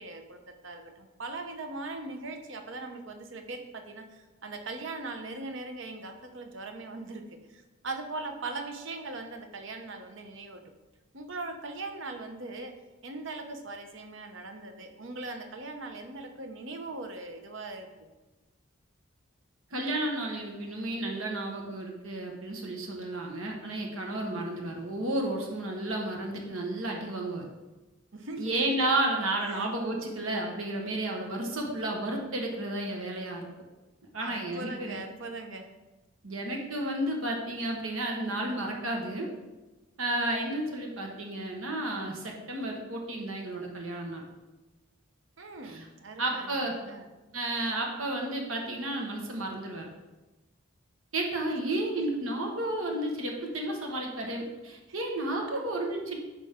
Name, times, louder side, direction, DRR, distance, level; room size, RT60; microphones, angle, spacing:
voice 1, 0.0-7.2 7.5-10.6 11.1-12.7 13.0-17.9 28.1-28.5 29.5-29.6 34.2-35.7 45.4-47.1 55.5-55.6, right 3 dB, 65° right, 5 dB, 0.9 m, -40 dB
voice 2, 19.7-27.4 28.4-33.5 34.1-35.0 36.2-39.3 40.0-44.2 45.6-45.9 46.2-46.8 47.3-49.8 51.1-56.2, right 1 dB, 85° right, 0 dB, 1.4 m, -32 dB
9.9 x 5.5 x 3.7 m, 1.1 s
head